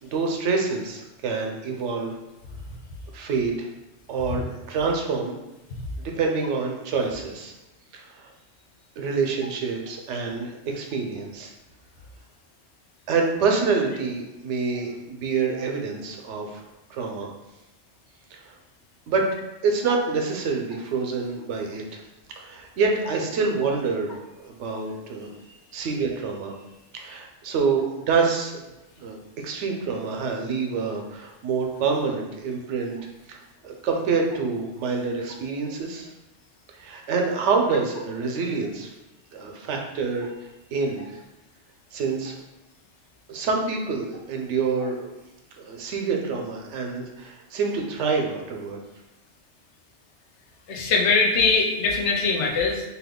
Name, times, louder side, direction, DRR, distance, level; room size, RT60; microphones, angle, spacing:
voice 1, 0.0-2.1 3.1-3.7 4.1-5.3 6.0-7.5 7.9-8.3 9.0-11.5 13.1-16.6 16.9-17.3 18.3-18.5 19.1-19.2 19.6-22.0 22.4-25.3 25.7-26.5 26.9-28.6 29.0-29.2 29.4-33.0 33.3-33.4 33.6-36.1 36.7-38.9 39.3-40.3 40.7-41.2 41.9-42.4 43.3-45.1 45.6-48.8, right 4 dB, 90° right, 2 dB, 0.9 m, -27 dB
voice 2, 50.7-52.8, left 4 dB, 80° left, 1 dB, 0.9 m, -22 dB
2.8 x 2.3 x 3.5 m, 1.0 s
omnidirectional pair, 1.2 m